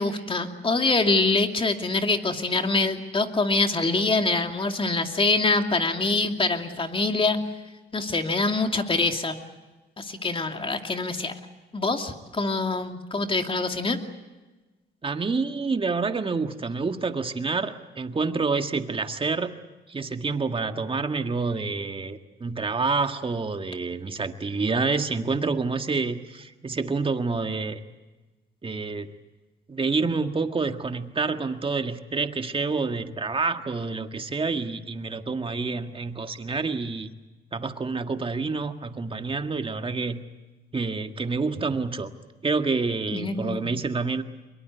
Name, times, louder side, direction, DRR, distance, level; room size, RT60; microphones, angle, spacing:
voice 1, 0.0-7.4 7.9-9.3 10.0-11.3 11.7-14.0 43.1-43.7, left 3 dB, 25° left, 5 dB, 2.5 m, -25 dB
voice 2, 15.0-19.5 19.9-27.8 28.6-29.1 29.7-37.1 37.5-40.2 40.7-42.1 42.4-44.2, right 4 dB, 25° right, 7 dB, 1.8 m, -28 dB
24.0 x 22.5 x 8.2 m, 1.2 s
cardioid pair, 90°, 20 cm